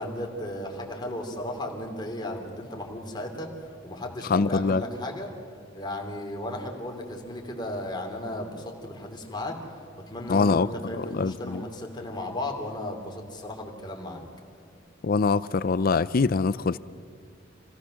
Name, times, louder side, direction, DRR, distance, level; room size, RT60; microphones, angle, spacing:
voice 1, 0.0-5.3 5.7-9.5 10.1-14.2, left 1 dB, 25° left, 3.0 m, -35 dB
voice 2, 4.3-4.8 10.3-10.7 11.0-11.6 15.0-16.8, left 4 dB, 50° left, 0.5 m, -24 dB
27.0 x 17.5 x 6.4 m
head